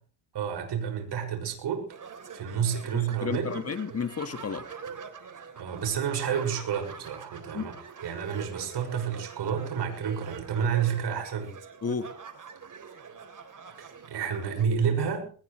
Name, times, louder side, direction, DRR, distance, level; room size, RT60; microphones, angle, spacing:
voice 1, 0.3-1.9 2.3-3.6 5.6-7.8 8.0-11.5 13.8-15.3, right 7 dB, 55° right, 6.2 m, -30 dB
sound 1, 1.9-14.6, right 6 dB, 40° right, 3.7 m, -44 dB
voice 2, 2.9-4.7 7.5-7.7 11.8-12.1, left 6 dB, 30° left, 1.7 m, -32 dB
21.0 x 19.5 x 3.3 m
cardioid pair, 105°, 48 cm